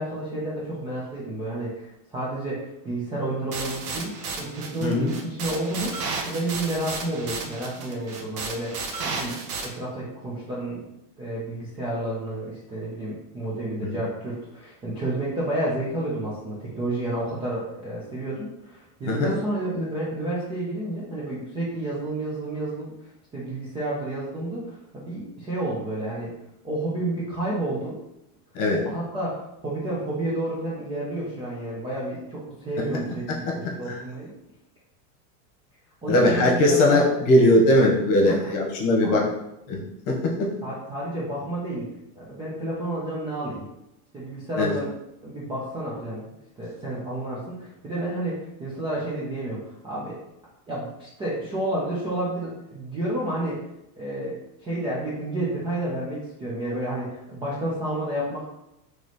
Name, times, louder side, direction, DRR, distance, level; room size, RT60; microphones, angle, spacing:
voice 1, 0.0-5.9 6.2-9.4 9.6-10.9 11.2-22.9 23.3-26.3 26.6-28.0 28.7-34.3 36.0-37.1 38.2-38.5 39.0-39.3 40.6-41.9 42.1-43.7 44.1-44.9 45.2-50.2 50.7-53.6 54.0-58.4, right 1 dB, 10° right, -7 dB, 0.4 m, -30 dB
sound 1, 3.5-9.7, right 4 dB, 70° right, 1.0 m, -33 dB
voice 2, 4.8-5.1 13.8-14.0 19.1-19.3 28.5-28.8 33.3-33.6 33.9-34.0 36.1-39.3 39.7-39.8 40.1-40.5 44.6-44.7, left 1 dB, 40° left, -1 dB, 1.1 m, -20 dB
3.1 x 3.0 x 4.0 m, 0.87 s
supercardioid pair, 150°, 47 cm